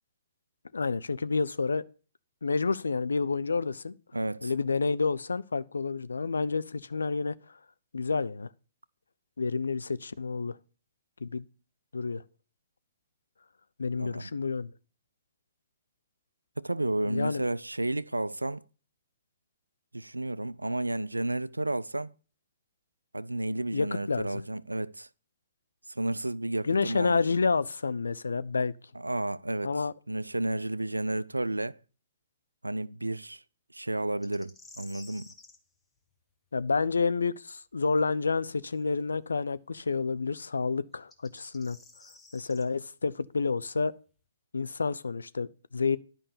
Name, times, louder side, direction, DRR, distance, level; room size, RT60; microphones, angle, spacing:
voice 1, 0.7-1.8 2.4-3.9 4.4-7.3 7.9-8.5 9.4-10.6 11.2-11.5 11.9-12.2 13.8-14.7 17.0-17.5 23.7-24.4 26.6-28.8 29.6-29.9 36.5-41.8 42.3-43.9 44.5-46.0, left 4 dB, 75° left, 0.5 m, -29 dB
voice 2, 4.1-4.5 14.0-14.3 16.6-18.6 19.9-22.1 23.1-25.1 25.9-27.2 28.9-29.7 30.1-31.8 32.6-33.4 33.7-35.3, right 1 dB, 85° right, 0.4 m, -32 dB
sound 1, 34.2-35.6 38.7-38.8 40.9-42.7, left 2 dB, 10° left, 1.2 m, -52 dB
10.5 x 5.4 x 6.7 m
figure-of-eight pair, 120°, 0 cm